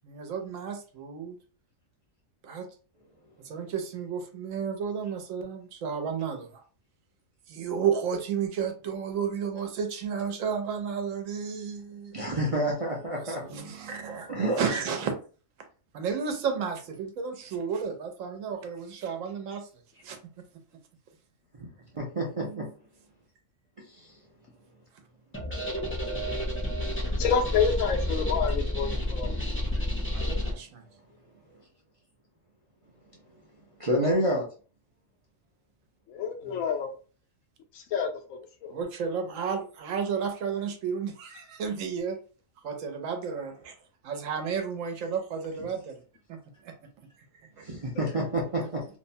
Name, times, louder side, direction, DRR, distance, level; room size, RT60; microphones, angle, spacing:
voice 1, 0.1-1.4 2.4-2.7 3.4-6.6 7.5-12.1 13.1-14.3 14.6-15.1 15.9-19.7 20.0-20.2 30.1-30.8 36.5-36.6 38.7-42.2 42.6-43.8 44.0-46.0 46.3-46.7 47.6-47.7, right 6 dB, 75° right, 1.0 m, -32 dB
voice 2, 12.1-14.6 21.6-21.7 21.9-22.7 23.9-24.1 29.7-29.9 33.8-34.4 47.6-48.9, right 1 dB, 50° right, 0.4 m, -29 dB
sound 1, 25.3-30.5, left 1 dB, 20° left, 0.4 m, -30 dB
voice 3, 27.2-29.3 36.1-36.9 37.7-38.7, left 6 dB, 90° left, 1.0 m, -28 dB
2.8 x 2.1 x 2.6 m
omnidirectional pair, 1.4 m